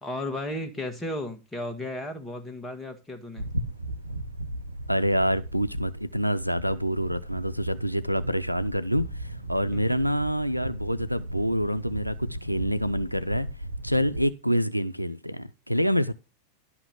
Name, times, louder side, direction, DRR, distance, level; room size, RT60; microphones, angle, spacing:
voice 1, 0.0-3.4 9.7-9.8, left 1 dB, 10° left, 1.9 m, -34 dB
sound 1, 3.4-14.3, right 1 dB, 85° right, 0.8 m, -36 dB
voice 2, 4.9-13.5 13.8-16.1, equal, 90° left, 0.4 m, -27 dB
11.0 x 5.9 x 5.8 m
figure-of-eight pair, 90°, 0 cm